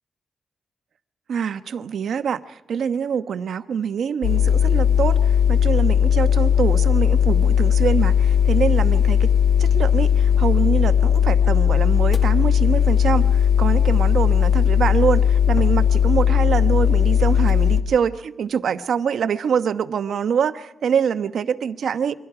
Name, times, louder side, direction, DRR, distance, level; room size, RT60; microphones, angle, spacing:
voice 1, 1.3-9.3 9.6-22.1, right 7 dB, 70° right, 10 dB, 1.1 m, -24 dB
sound 1, 4.2-17.8, left 8 dB, 60° left, 2.2 m, -17 dB
29.0 x 24.0 x 4.9 m, 0.80 s
wide cardioid pair, 125°, 0 cm